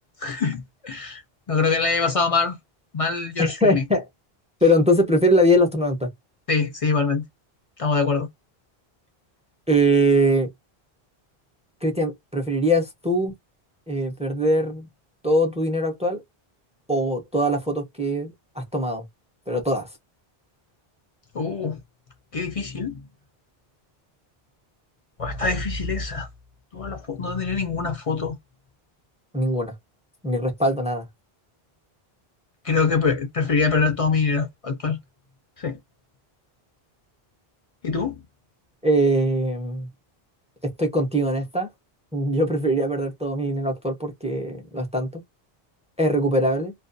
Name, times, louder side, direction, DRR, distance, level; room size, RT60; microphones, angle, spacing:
voice 1, 0.2-1.2 1.5-2.6 2.9-3.8 6.5-7.2 7.8-8.3 21.3-21.8 22.3-23.0 25.2-26.3 26.7-28.4 32.6-35.0 35.6-35.8 37.8-38.2, left 4 dB, 45° left, 0.5 m, -24 dB
voice 2, 3.4-4.0 4.6-6.1 9.7-10.5 11.8-13.3 13.9-14.9 15.2-16.2 16.9-19.0 19.5-19.9 29.3-29.7 30.2-31.1 38.8-39.9 40.6-41.7 42.1-45.2 46.0-46.7, equal, 10° right, 0.5 m, -22 dB
2.3 x 2.2 x 2.5 m
omnidirectional pair, 1.0 m